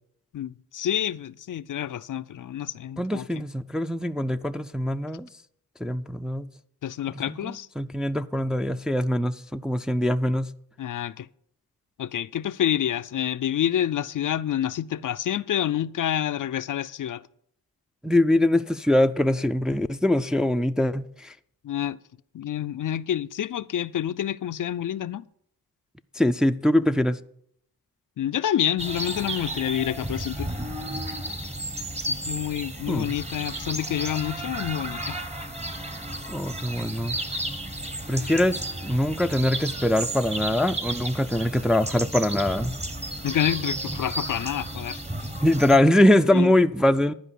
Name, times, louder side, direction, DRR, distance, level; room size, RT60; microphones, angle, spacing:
voice 1, 0.3-3.3 6.8-7.7 10.8-11.3 12.0-17.2 21.6-22.0 22.3-25.2 28.2-30.5 32.1-35.2 43.2-45.3 46.3-46.5, left 10 dB, 60° left, 0.4 m, -28 dB
voice 2, 3.0-5.3 5.8-6.5 7.3-10.5 18.0-21.3 26.2-27.2 32.9-33.1 36.3-37.2 38.1-42.8 45.4-47.1, left 1 dB, ahead, 0.4 m, -23 dB
sound 1, 28.8-45.8, right 1 dB, 15° right, 1.1 m, -33 dB
11.0 x 5.0 x 8.3 m
cardioid pair, 70°, 37 cm